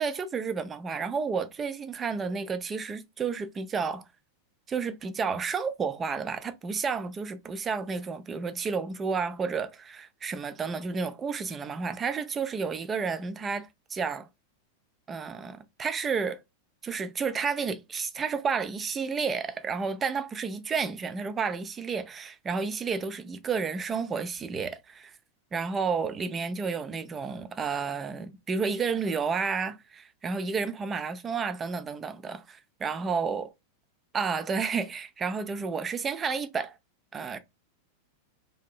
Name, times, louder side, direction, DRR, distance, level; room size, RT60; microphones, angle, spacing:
voice 1, 0.0-4.0 4.7-14.3 15.1-16.4 16.8-25.1 25.5-33.4 34.1-36.8 37.1-37.4, right 5 dB, 20° right, 0.4 m, -31 dB
3.5 x 2.6 x 2.3 m
figure-of-eight pair, 90°, 0 cm